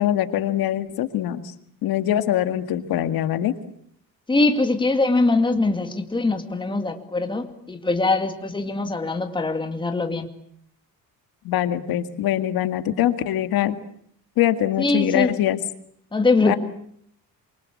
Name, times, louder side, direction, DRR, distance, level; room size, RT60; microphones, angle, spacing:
voice 1, 0.0-1.5 1.8-3.5 11.4-13.8 14.4-15.6 16.4-16.6, left 12 dB, 75° left, 10 dB, 2.0 m, -23 dB
voice 2, 4.3-10.3 14.8-15.3 16.1-16.6, left 3 dB, 15° left, 6 dB, 2.4 m, -22 dB
27.5 x 24.0 x 8.5 m, 0.67 s
cardioid pair, 150°, 36 cm